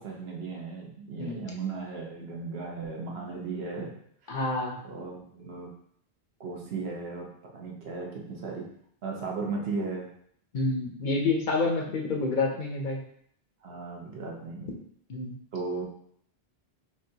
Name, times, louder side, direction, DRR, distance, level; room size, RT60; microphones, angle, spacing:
voice 1, 0.0-3.9 4.2-4.3 4.8-5.7 6.4-8.6 9.0-10.1 13.6-14.7 15.5-15.8, right 4 dB, 70° right, -1 dB, 1.1 m, -36 dB
voice 2, 4.3-4.8 10.5-13.0 15.1-15.3, left 3 dB, 55° left, 1 dB, 0.7 m, -28 dB
6.0 x 2.3 x 2.7 m, 0.67 s
omnidirectional pair, 1.1 m